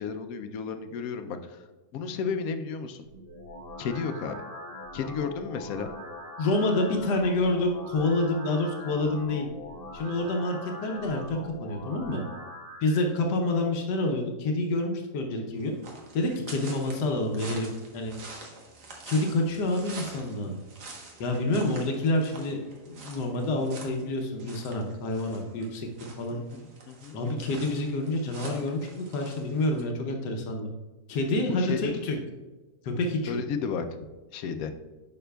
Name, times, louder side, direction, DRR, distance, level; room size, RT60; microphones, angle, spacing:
voice 1, 0.0-1.6 1.9-3.0 3.8-4.4 4.9-5.9 16.5-16.8 26.3-27.2 31.5-32.0 33.2-33.8 34.3-34.7, left 6 dB, 70° left, 8 dB, 0.9 m, -33 dB
sound 1, 3.0-13.0, left 1 dB, 30° right, 0.8 m, -42 dB
voice 2, 6.4-9.5 9.9-12.2 12.8-15.7 16.1-18.2 19.1-20.6 21.2-22.6 22.8-26.4 27.1-30.7 31.1-32.2 32.8-33.4, left 2 dB, 85° left, 2 dB, 1.4 m, -28 dB
sound 2, 15.6-29.8, right 3 dB, 70° right, 1.7 m, -46 dB
9.4 x 5.8 x 2.3 m, 1.2 s
omnidirectional pair, 1.8 m